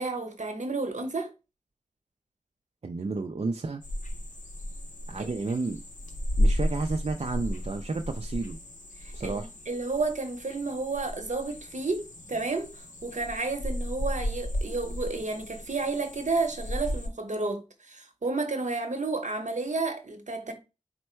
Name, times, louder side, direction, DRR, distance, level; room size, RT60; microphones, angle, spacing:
voice 1, 0.0-1.3 5.1-5.4 9.0-20.5, right 3 dB, 75° right, 0.9 m, -31 dB
voice 2, 2.8-3.8 5.1-5.8 6.4-8.6 9.1-9.5, right 3 dB, 55° right, 0.4 m, -31 dB
sound 1, 3.8-17.1, left 1 dB, 80° left, 0.7 m, -33 dB
4.4 x 2.1 x 4.4 m
wide cardioid pair, 50°, 13 cm